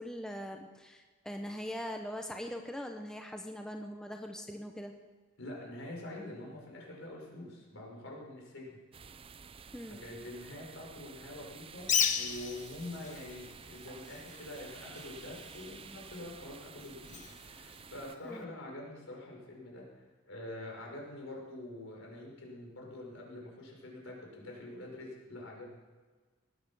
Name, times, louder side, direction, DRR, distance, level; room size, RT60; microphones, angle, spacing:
voice 1, 0.0-4.9 9.7-10.0 18.2-18.5, equal, 5° left, 3 dB, 0.9 m, -41 dB
voice 2, 5.4-8.8 9.9-11.9 12.1-25.7, left 1 dB, 70° left, -1 dB, 5.3 m, -45 dB
sound 1, 8.9-18.2, right 6 dB, 25° right, 0.5 m, -51 dB
Bird, 11.8-18.4, left 7 dB, 40° left, 1.2 m, -37 dB
18.5 x 9.4 x 6.2 m, 1.4 s
head